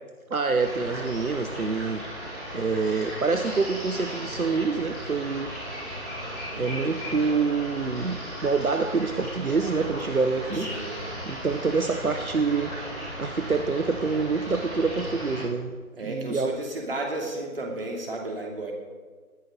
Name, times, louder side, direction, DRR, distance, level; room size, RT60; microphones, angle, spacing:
voice 1, 0.3-2.0 2.5-5.5 6.6-10.7 11.3-12.7 13.2-15.7 16.0-16.5, right 4 dB, 70° right, 7 dB, 1.1 m, -26 dB
sound 1, 0.5-15.4, equal, 5° right, 1.2 m, -36 dB
voice 2, 6.5-6.9 10.6-11.1 16.0-18.7, right 2 dB, 40° right, 0 dB, 2.8 m, -33 dB
19.0 x 13.0 x 3.9 m, 1.5 s
figure-of-eight pair, 155°, 44 cm